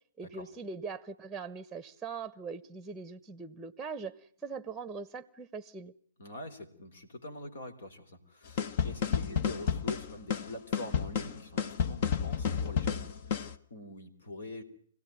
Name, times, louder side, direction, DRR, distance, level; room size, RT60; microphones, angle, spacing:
voice 1, 0.2-5.9, right 5 dB, 5° right, 16 dB, 1.0 m, -41 dB
voice 2, 6.2-14.6, left 2 dB, 65° left, 8 dB, 3.8 m, -44 dB
sound 1, 8.6-13.6, left 7 dB, 50° left, 1.3 m, -31 dB
25.0 x 17.0 x 9.3 m, 0.63 s
hypercardioid pair, 130°, 0 cm